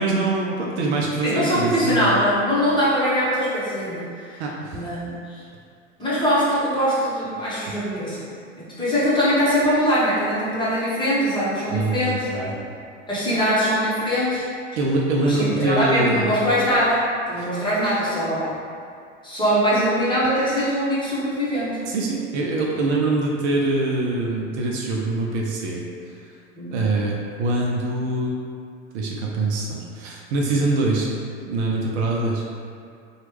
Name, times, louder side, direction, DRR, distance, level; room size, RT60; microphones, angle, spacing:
voice 1, 0.0-2.2 4.4-4.8 11.7-12.5 14.8-16.4 17.4-17.5 21.9-25.8 26.7-28.4 28.9-31.1 31.4-32.4, right 2 dB, 60° right, -2 dB, 0.6 m, -24 dB
voice 2, 1.2-4.4 4.7-5.4 6.0-8.2 8.6-12.5 13.1-14.5 15.2-17.0 17.3-18.5 19.2-21.8 26.6-26.8, equal, 10° left, -10 dB, 1.1 m, -22 dB
2.9 x 2.4 x 3.2 m, 2.3 s
hypercardioid pair, 95°, 38 cm